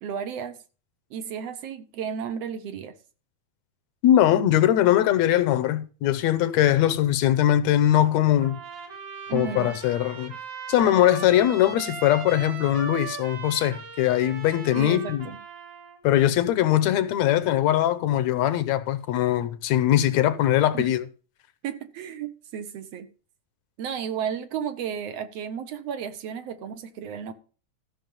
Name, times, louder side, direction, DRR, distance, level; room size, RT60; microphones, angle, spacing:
voice 1, 0.0-0.6 1.1-3.0 9.3-9.8 14.7-15.4 20.7-20.9 21.6-23.1 23.8-27.3, right 8 dB, 70° right, 1.8 m, -33 dB
voice 2, 4.0-8.6 9.3-10.3 10.7-15.3 16.0-21.0, left 12 dB, 80° left, 2.0 m, -21 dB
Trumpet, 8.4-16.0, right 5 dB, 85° right, 3.7 m, -39 dB
14.5 x 6.2 x 5.4 m
omnidirectional pair, 3.3 m